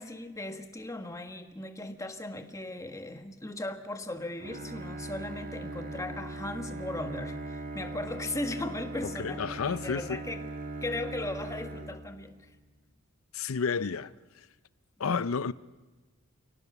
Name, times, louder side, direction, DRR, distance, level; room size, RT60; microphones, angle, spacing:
voice 1, 0.0-10.5 10.8-12.5 15.1-15.2, left 2 dB, 15° left, 1.5 m, -37 dB
Bowed string instrument, 4.4-12.6, right 2 dB, 45° right, 1.7 m, -40 dB
voice 2, 9.0-10.2 13.3-14.1 15.0-15.5, left 5 dB, 75° left, 0.6 m, -31 dB
29.0 x 17.5 x 6.1 m
head